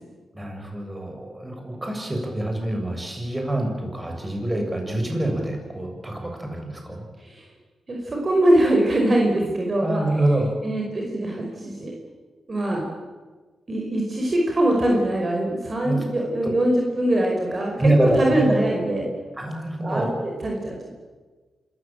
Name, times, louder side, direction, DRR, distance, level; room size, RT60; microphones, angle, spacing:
voice 1, 0.3-7.0 9.8-10.5 15.8-16.1 17.8-18.5 19.4-20.1, right 1 dB, 15° right, 2 dB, 7.4 m, -25 dB
voice 2, 7.9-10.0 10.6-11.9 12.5-12.8 13.7-17.7 18.0-19.0 19.8-20.8, right 1 dB, 40° right, 0 dB, 5.3 m, -22 dB
26.5 x 15.0 x 9.2 m, 1.4 s
cardioid pair, 65°, 0 cm